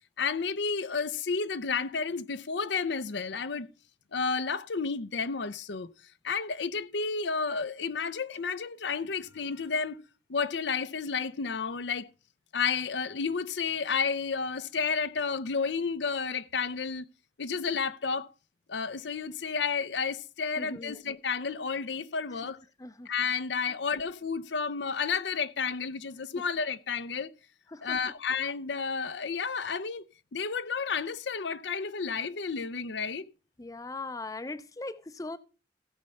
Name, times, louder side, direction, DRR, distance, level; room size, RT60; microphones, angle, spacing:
voice 1, 0.2-3.7 4.1-5.9 6.2-10.0 10.3-12.1 12.5-17.0 17.4-18.3 18.7-22.6 23.1-27.3 27.8-30.1 30.3-33.2, left 5 dB, 85° left, 0.7 m, -31 dB
voice 2, 20.6-21.0 22.8-23.1 23.7-23.8 27.7-28.0 33.6-35.4, left 2 dB, 20° left, 0.5 m, -39 dB
16.0 x 5.4 x 5.6 m
head